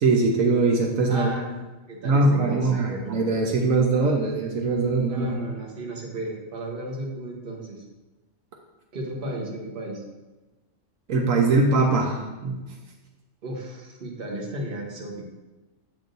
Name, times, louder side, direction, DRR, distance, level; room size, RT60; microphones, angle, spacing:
voice 1, 0.0-1.3 2.0-5.5 11.1-12.6, right 3 dB, 80° right, 1 dB, 1.2 m, -22 dB
voice 2, 1.1-1.6 1.9-3.1 5.1-7.9 8.9-10.0 13.4-15.2, right 1 dB, 45° right, 0 dB, 1.3 m, -34 dB
8.3 x 6.1 x 2.6 m, 1.1 s
omnidirectional pair, 1.4 m